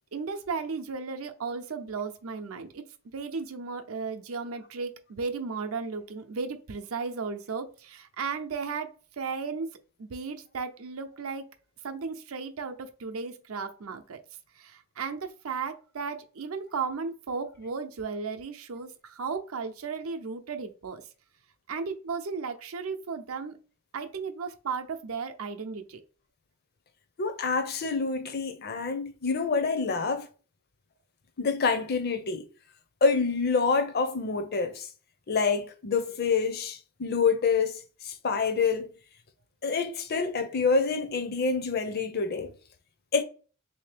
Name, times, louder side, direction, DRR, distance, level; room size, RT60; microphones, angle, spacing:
voice 1, 0.1-2.8 3.1-8.9 9.2-9.7 10.0-11.5 11.8-14.2 14.6-21.0 21.7-23.6 23.9-26.0, right 5 dB, 80° right, 0.6 m, -35 dB
voice 2, 27.2-30.3 31.4-32.4 33.0-34.9 35.3-38.9 39.6-42.5 43.1-43.2, left 4 dB, 50° left, 0.5 m, -27 dB
3.5 x 2.8 x 3.3 m
head